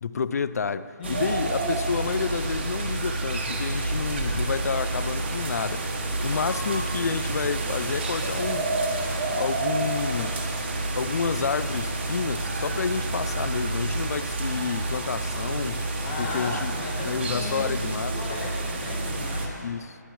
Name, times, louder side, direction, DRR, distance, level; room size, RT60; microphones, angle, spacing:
voice 1, 0.0-5.9 6.2-8.7 9.4-10.3 11.0-15.8 16.2-16.7 17.0-18.2 19.6-20.0, left 5 dB, 55° left, 0.4 m, -29 dB
voice 2, 1.0-1.3 10.0-10.4 16.0-19.6, left 3 dB, 25° left, 1.3 m, -36 dB
sound 1, 1.0-19.5, right 2 dB, 35° right, 1.2 m, -29 dB
sound 2, 4.4-16.4, equal, 10° left, 1.5 m, -48 dB
20.0 x 8.9 x 3.1 m
hypercardioid pair, 170°, 10 cm